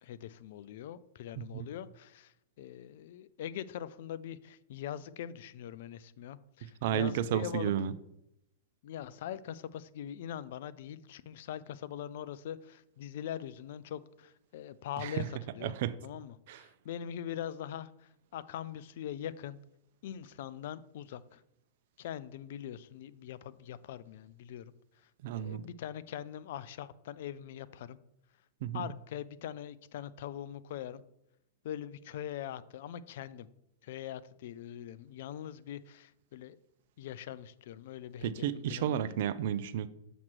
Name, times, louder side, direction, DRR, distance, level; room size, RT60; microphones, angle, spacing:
voice 1, 0.0-7.7 8.8-15.2 15.5-15.7 16.0-19.6 20.0-21.4 22.0-24.7 25.3-28.0 28.7-31.0 31.6-33.5 33.8-36.6 37.0-39.0, left 10 dB, 60° left, 17 dB, 0.4 m, -42 dB
voice 2, 6.6-8.0 15.0-15.3 15.6-16.0 16.5-16.6 25.2-25.7 28.6-28.9 38.2-39.9, right 10 dB, 55° right, 13 dB, 0.4 m, -32 dB
7.2 x 3.0 x 6.0 m, 0.81 s
hypercardioid pair, 105°, 0 cm